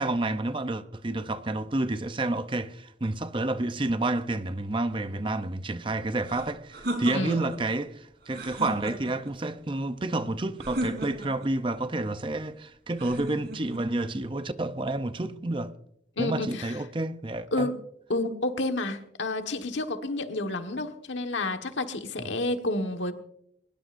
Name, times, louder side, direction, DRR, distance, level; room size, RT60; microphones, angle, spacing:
voice 1, 0.0-15.7 16.2-17.7, right 2 dB, 25° right, 0.6 m, -30 dB
sound 1, 6.2-7.6 8.3-9.3 10.6-11.5 13.0-13.8, right 1 dB, 60° right, 3.8 m, -35 dB
voice 2, 7.1-7.4 16.2-16.8 17.5-17.8 18.1-23.1, left 2 dB, 85° left, 1.5 m, -30 dB
22.0 x 20.5 x 2.6 m
head